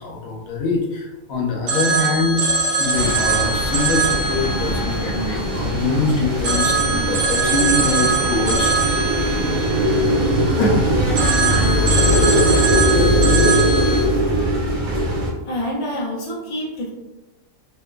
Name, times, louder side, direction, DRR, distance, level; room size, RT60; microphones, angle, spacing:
voice 1, 0.0-8.7 9.1-9.5 10.6-10.8 11.8-12.0, left 3 dB, 85° left, -2 dB, 1.1 m, -24 dB
Telephone, 1.7-6.0 6.4-10.7 11.2-14.0, right 4 dB, 65° right, 0.9 m, -22 dB
sound 1, 2.9-15.3, equal, 50° right, 0.6 m, -20 dB
voice 2, 15.4-16.9, equal, 40° left, -5 dB, 0.4 m, -27 dB
2.8 x 2.2 x 2.2 m, 1.1 s
omnidirectional pair, 1.4 m